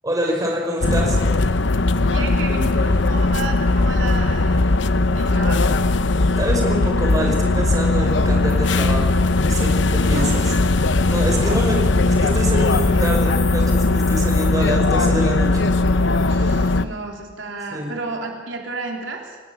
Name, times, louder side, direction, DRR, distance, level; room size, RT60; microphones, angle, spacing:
voice 1, 0.0-1.2 6.4-10.5 11.1-15.7 17.7-17.9, equal, 20° right, 0 dB, 5.5 m, -26 dB
sound 1, 0.8-16.8, left 2 dB, 70° left, 0.9 m, -18 dB
voice 2, 2.0-4.8 5.1-5.8 10.0-10.4 11.4-11.9 16.3-19.4, right 3 dB, 90° right, 1 dB, 3.6 m, -32 dB
29.0 x 18.0 x 7.3 m, 1.4 s
head